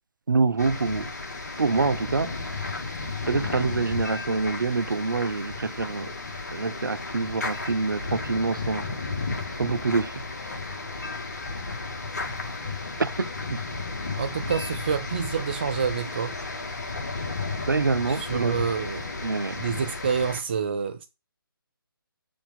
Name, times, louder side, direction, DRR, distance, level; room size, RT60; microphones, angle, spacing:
voice 1, 0.3-1.1 1.6-2.3 3.3-6.1 6.5-8.9 9.6-10.1 13.0-13.6 17.7-18.5 19.2-19.5, right 4 dB, 55° right, 0.8 m, -26 dB
sound 1, 0.6-20.4, left 3 dB, 45° left, 1.7 m, -33 dB
voice 2, 14.2-16.3 18.1-19.1 19.5-21.1, right 6 dB, 25° right, 0.5 m, -28 dB
6.9 x 5.3 x 5.2 m
figure-of-eight pair, 145°, 12 cm